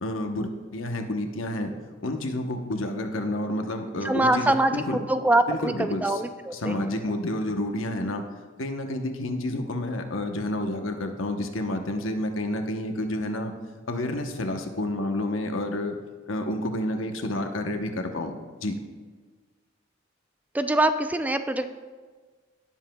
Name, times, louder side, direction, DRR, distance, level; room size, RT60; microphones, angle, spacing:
voice 1, 0.0-1.7 2.0-5.0 5.5-6.2 6.5-8.2 8.6-13.5 13.9-16.0 16.3-18.3 18.6-18.8, left 1 dB, 85° left, 5 dB, 0.9 m, -29 dB
voice 2, 4.0-6.9 20.5-21.7, right 2 dB, 10° right, 9 dB, 0.3 m, -24 dB
18.0 x 7.3 x 2.3 m, 1.4 s
head